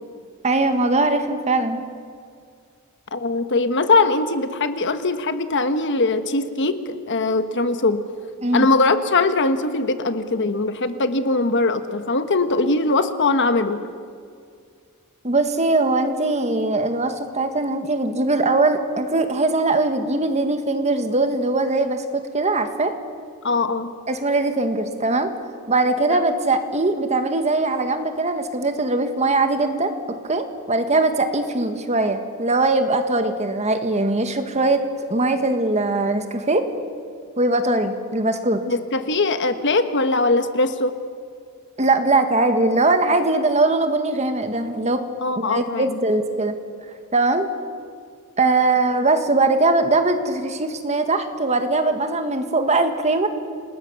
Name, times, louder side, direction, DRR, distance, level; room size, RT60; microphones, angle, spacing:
voice 1, 0.4-1.9 8.4-8.7 15.2-22.9 24.1-25.3 25.7-29.9 30.3-34.8 35.1-36.6 37.4-38.6 41.8-45.0 45.4-46.5 47.1-47.5 48.4-53.3, right 2 dB, 30° right, 7 dB, 1.7 m, -21 dB
voice 2, 3.1-8.0 8.5-13.8 23.4-23.9 38.7-40.9 45.2-46.0, left 3 dB, 55° left, 10 dB, 1.3 m, -21 dB
28.5 x 19.5 x 7.1 m, 2.2 s
head